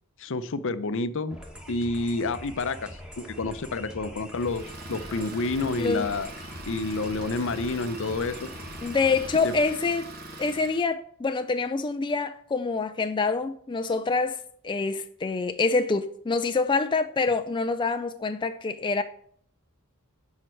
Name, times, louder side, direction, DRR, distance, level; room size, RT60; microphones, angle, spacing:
voice 1, 0.2-1.4 1.7-2.9 3.4-6.3 6.7-8.5 9.4-9.5, left 3 dB, 60° left, 0.7 m, -29 dB
sound 1, 1.3-9.6, equal, 5° right, 1.4 m, -43 dB
Idling, 4.4-10.9, right 2 dB, 45° right, 1.2 m, -42 dB
voice 2, 5.8-6.1 8.8-10.1 10.4-19.0, left 4 dB, 20° left, 0.4 m, -26 dB
7.7 x 5.7 x 7.7 m
head